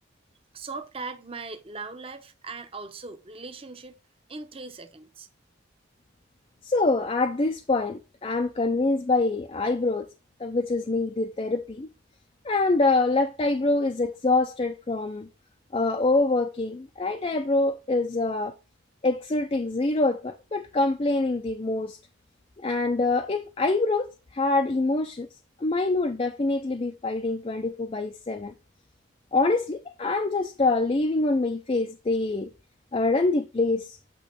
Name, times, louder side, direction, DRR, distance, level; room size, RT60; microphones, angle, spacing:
voice 1, 0.5-4.0 4.3-5.3, right 4 dB, 30° right, 0.7 m, -39 dB
voice 2, 6.6-10.1 10.4-11.9 12.4-15.3 15.7-18.5 19.0-22.0 22.6-25.3 25.6-28.5 29.3-32.5 32.9-34.0, left 2 dB, 25° left, 0.4 m, -25 dB
8.5 x 2.9 x 5.2 m
head